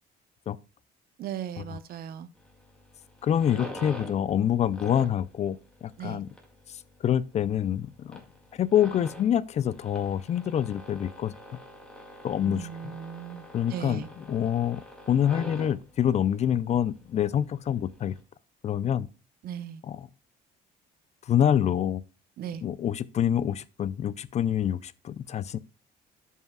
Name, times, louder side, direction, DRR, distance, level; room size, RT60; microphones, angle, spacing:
voice 1, 1.2-2.3 6.0-6.2 12.4-14.1 19.4-19.8 22.4-22.6, right 9 dB, 65° right, 0.8 m, -37 dB
sound 1, 2.4-18.2, left 1 dB, 5° left, 2.0 m, -46 dB
voice 2, 3.2-5.6 5.8-6.3 6.7-8.2 8.5-11.3 12.2-12.7 13.5-14.8 15.1-18.2 18.6-19.1 19.8-20.1 21.3-22.0 22.6-25.6, left 10 dB, 40° left, 0.4 m, -26 dB
12.0 x 5.5 x 2.2 m
cardioid pair, 110°, 17 cm